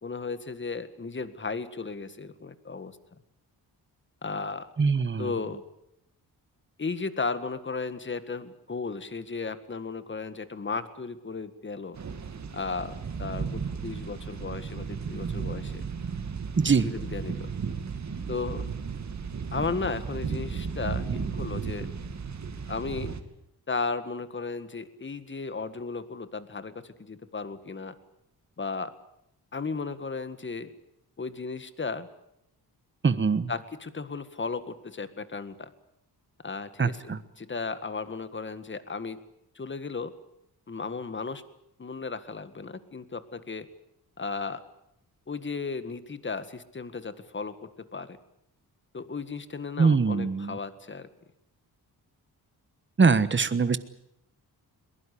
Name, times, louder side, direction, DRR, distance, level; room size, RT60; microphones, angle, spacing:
voice 1, 0.0-3.0 4.2-4.7 5.2-5.6 6.8-12.0 12.5-15.8 16.8-17.5 18.3-18.6 19.5-21.9 22.7-23.2 23.7-27.9 28.6-28.9 29.5-30.7 31.2-32.1 33.5-35.7 36.4-39.2 39.6-40.1 40.7-41.4 41.8-43.7 44.2-44.6 45.3-48.2 48.9-51.1, left 4 dB, 30° left, 12 dB, 1.9 m, -35 dB
voice 2, 4.8-5.3 16.6-17.0 33.0-33.5 36.8-37.2 49.8-50.6 53.0-53.8, right 5 dB, 30° right, 14 dB, 1.3 m, -23 dB
sound 1, 12.0-23.2, right 5 dB, 45° right, 2.4 m, -34 dB
22.0 x 21.0 x 8.5 m, 0.80 s
cardioid pair, 105°, 38 cm